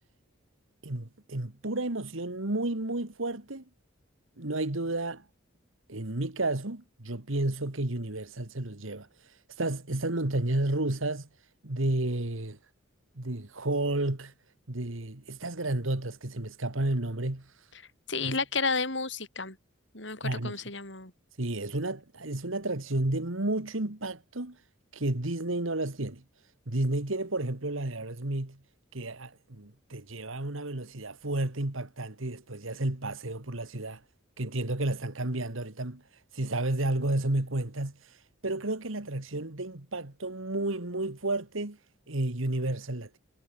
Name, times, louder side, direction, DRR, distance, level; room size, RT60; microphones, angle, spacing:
voice 1, 0.8-3.7 4.4-5.2 5.9-9.1 9.6-11.3 11.6-12.6 13.2-14.3 14.7-17.5 18.1-18.4 20.2-20.6 21.4-24.6 24.9-26.2 26.7-28.6 28.9-34.0 34.4-36.0 36.3-38.0 38.4-41.8 42.1-43.2, right 2 dB, 75° right, 2.1 m, -31 dB
voice 2, 18.1-19.6 19.9-21.1, left 4 dB, 60° left, 7.4 m, -31 dB
head